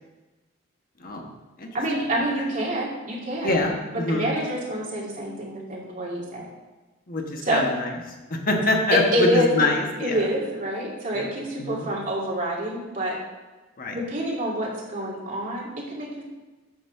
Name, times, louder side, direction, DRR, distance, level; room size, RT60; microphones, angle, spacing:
voice 1, 1.7-3.5 4.1-6.5 7.5-7.6 8.9-9.7 10.0-13.2 13.9-16.2, equal, 40° right, -4 dB, 2.4 m, -27 dB
voice 2, 3.4-4.3 7.1-7.9 8.3-10.2 11.1-11.3 11.6-11.9 13.8-14.0, left 2 dB, 45° left, 2 dB, 1.2 m, -25 dB
9.9 x 4.1 x 6.6 m, 1.2 s
head